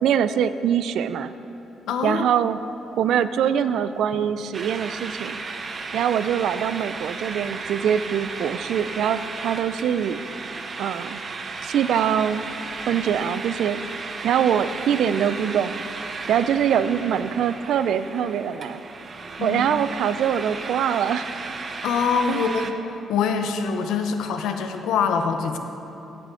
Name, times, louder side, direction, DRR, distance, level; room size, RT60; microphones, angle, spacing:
voice 1, 0.0-1.3 2.0-2.6 3.0-5.4 5.9-10.2 10.8-11.2 11.6-12.4 12.9-13.8 14.2-15.7 16.3-18.8 19.4-21.3 22.3-22.4, right 9 dB, 75° right, 13 dB, 0.4 m, -23 dB
voice 2, 1.9-2.3 19.4-19.6 21.8-25.6, left 6 dB, 85° left, 6 dB, 0.8 m, -24 dB
sound 1, 4.5-22.7, right 4 dB, 40° right, 0.7 m, -34 dB
16.0 x 8.4 x 3.8 m, 3.0 s
cardioid pair, 90°, 0 cm